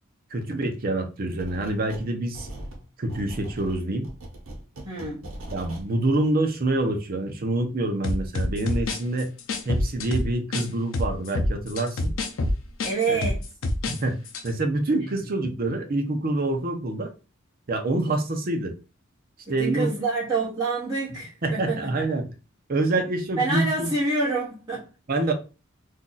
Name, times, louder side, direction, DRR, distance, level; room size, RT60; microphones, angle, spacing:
voice 1, 0.3-2.5 3.0-4.1 5.5-9.3 9.7-12.1 13.1-13.2 13.9-14.1 14.4-17.1 17.7-18.7 19.5-19.9 21.4-22.3 22.7-23.9 25.1-25.3, right 2 dB, 45° right, 0.6 m, -26 dB
sound 1, 1.4-2.1 2.3-5.9, right 1 dB, 80° right, 1.0 m, -40 dB
voice 2, 4.8-5.3 12.8-13.5 19.5-21.9 23.4-25.3, right 3 dB, 20° right, 1.0 m, -27 dB
sound 2, 8.0-10.7 10.9-14.0 14.3-14.5, left 1 dB, 75° left, 0.6 m, -26 dB
2.6 x 2.3 x 3.8 m
head